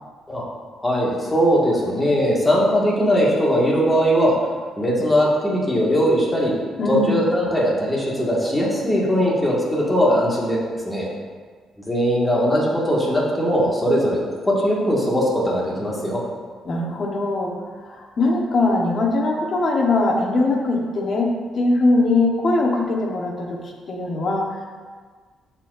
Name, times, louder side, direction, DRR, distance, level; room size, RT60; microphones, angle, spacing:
voice 1, 0.8-4.3 4.8-6.5 6.9-10.6 10.9-11.1 11.9-16.2, equal, 15° left, -5 dB, 2.0 m, -20 dB
voice 2, 6.8-7.2 16.6-17.6 17.8-24.6, left 2 dB, 50° left, 0 dB, 1.3 m, -21 dB
12.0 x 4.4 x 2.7 m, 1.5 s
cardioid pair, 90°, 0 cm